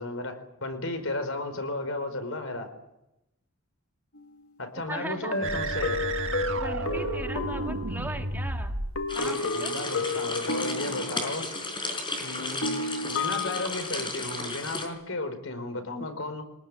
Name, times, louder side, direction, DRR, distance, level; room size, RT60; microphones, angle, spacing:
voice 1, 0.0-2.7 4.6-6.0 9.2-11.5 12.2-16.4, left 2 dB, 65° left, 8 dB, 4.8 m, -34 dB
sound 1, 4.2-4.3 5.3-8.5 9.0-11.5 12.6-13.7, left 3 dB, 85° left, 2.4 m, -32 dB
voice 2, 4.9-5.4 6.5-8.8 9.1-9.7, right 1 dB, 10° right, 4 dB, 1.9 m, -38 dB
sound 2, 5.4-9.0, right 2 dB, 60° right, 2.1 m, -32 dB
sound 3, 9.1-14.9, left 2 dB, 20° left, 5.4 m, -34 dB
24.5 x 20.0 x 10.0 m, 0.89 s
head